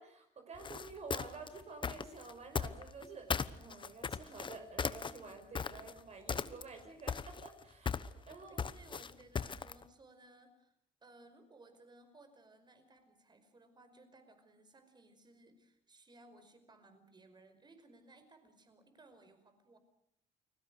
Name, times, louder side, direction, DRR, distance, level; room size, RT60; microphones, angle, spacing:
voice 1, 0.0-8.6, right 4 dB, 40° right, 5 dB, 5.1 m, -50 dB
sound 1, 0.6-3.1 3.3-6.0 6.3-6.8 7.1-9.8, left 6 dB, 30° left, 1.1 m, -37 dB
voice 2, 8.5-10.7 11.0-19.8, right 2 dB, 25° right, 9 dB, 5.2 m, -61 dB
29.5 x 20.5 x 6.6 m, 0.69 s
cardioid pair, 110°, 17 cm